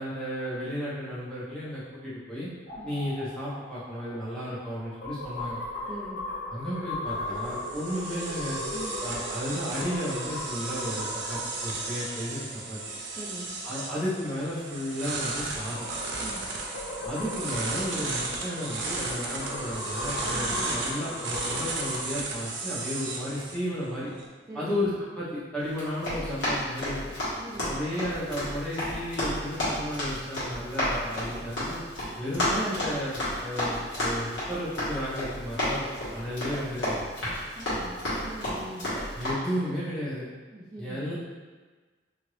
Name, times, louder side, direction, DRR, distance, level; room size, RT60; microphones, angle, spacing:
voice 1, 0.0-2.5 2.8-5.6 6.5-8.6 9.0-12.8 13.6-15.9 17.0-24.1 24.5-27.0 27.7-31.8 32.2-35.9 36.1-37.0 39.2-40.2 40.8-41.1, equal, 5° left, -10 dB, 0.9 m, -33 dB
sound 1, 2.7-13.3 15.2-22.1, left 1 dB, 70° left, 0.7 m, -38 dB
voice 2, 5.9-6.2 8.7-9.0 13.2-13.5 16.2-16.4 20.3-20.6 24.5-24.7 27.4-27.7 37.6-38.9 40.5-41.0, right 1 dB, 15° right, -9 dB, 0.4 m, -42 dB
sound 2, 7.1-24.3, right 3 dB, 75° right, 0.5 m, -35 dB
Run, 25.7-39.3, left 1 dB, 85° left, 1.4 m, -32 dB
2.8 x 2.6 x 3.1 m, 1.3 s
head